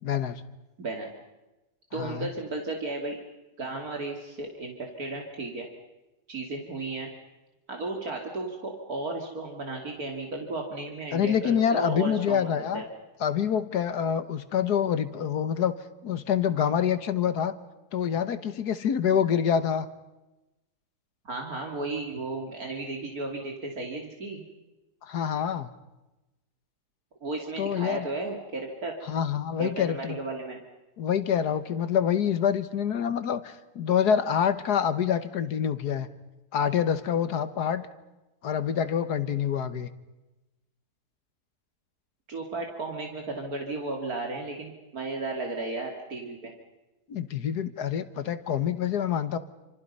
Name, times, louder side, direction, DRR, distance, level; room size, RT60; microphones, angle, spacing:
voice 1, 0.0-0.4 1.9-2.3 11.1-12.8 13.2-15.7 16.0-17.5 17.9-19.9 25.0-25.7 27.6-28.1 29.1-30.2 31.0-36.1 36.5-37.9 38.4-39.9 47.1-49.4, left 8 dB, 80° left, 12 dB, 1.7 m, -26 dB
voice 2, 0.8-1.1 1.9-3.2 3.6-5.7 6.3-7.1 7.7-12.8 21.2-24.4 27.2-28.9 29.6-30.6 42.3-46.5, right 2 dB, 65° right, 2 dB, 3.1 m, -34 dB
28.0 x 27.0 x 5.5 m, 1.0 s
omnidirectional pair, 1.7 m